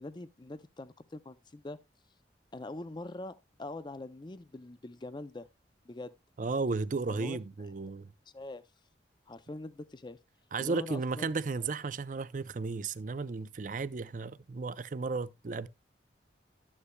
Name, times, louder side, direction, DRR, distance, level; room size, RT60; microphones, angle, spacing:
voice 1, 0.0-1.8 2.5-5.5 5.9-6.1 7.1-7.4 8.3-8.7 9.3-10.2 10.6-11.3, left 2 dB, 25° left, 0.4 m, -43 dB
voice 2, 6.4-8.1 10.5-15.7, right 4 dB, 45° right, 0.5 m, -34 dB
12.5 x 9.8 x 2.2 m
head